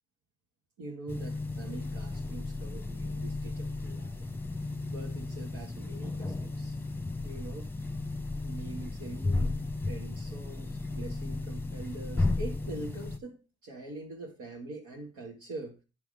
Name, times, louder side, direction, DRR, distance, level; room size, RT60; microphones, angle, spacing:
voice 1, 0.8-4.3 4.9-6.8 7.2-7.7 8.4-15.8, right 2 dB, 85° right, 1.7 m, -44 dB
sound 1, 1.1-13.2, left 2 dB, 5° left, 0.8 m, -34 dB
10.5 x 3.6 x 6.4 m
cardioid pair, 90°, 30 cm